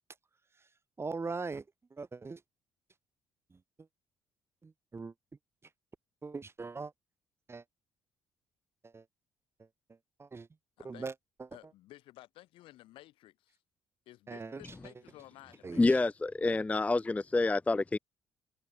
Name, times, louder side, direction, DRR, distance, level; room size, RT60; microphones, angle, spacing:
voice 1, 1.0-1.6 1.9-2.4 4.6-5.1 6.2-6.9 7.5-7.6 8.8-9.0 10.2-10.5 10.8-11.7 14.3-15.0 15.6-16.0, right 4 dB, 30° right, 0.8 m, -41 dB
voice 2, 10.8-11.1 11.5-13.6 14.1-15.8, left 16 dB, 70° left, 2.4 m, -54 dB
voice 3, 15.8-18.0, left 2 dB, 15° left, 0.4 m, -28 dB
hypercardioid pair, 50°, 9 cm